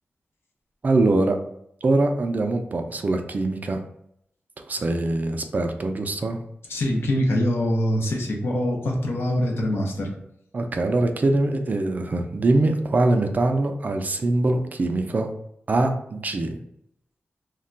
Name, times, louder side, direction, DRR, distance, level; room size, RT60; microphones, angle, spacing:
voice 1, 0.8-1.4 1.8-3.8 4.7-6.4 10.5-15.3 15.7-16.6, right 2 dB, 40° right, 5 dB, 0.3 m, -23 dB
voice 2, 6.7-10.1, left 1 dB, 70° left, 0 dB, 0.7 m, -24 dB
2.2 x 2.1 x 3.8 m, 0.74 s
wide cardioid pair, 95°, 4 cm